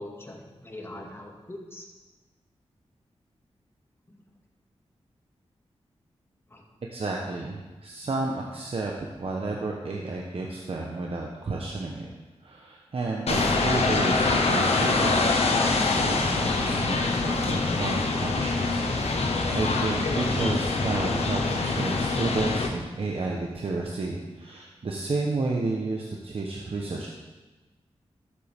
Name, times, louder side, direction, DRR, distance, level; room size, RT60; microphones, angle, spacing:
voice 1, 0.0-1.9 4.1-4.2 6.5-6.6, left 1 dB, 20° left, -1 dB, 2.1 m, -42 dB
voice 2, 6.9-12.1 12.4-27.1, right 3 dB, 60° right, -1 dB, 1.1 m, -32 dB
sound 1, 13.3-22.7, left 3 dB, 70° left, 1.3 m, -25 dB
13.0 x 7.5 x 3.7 m, 1.2 s
cardioid pair, 60°, 11 cm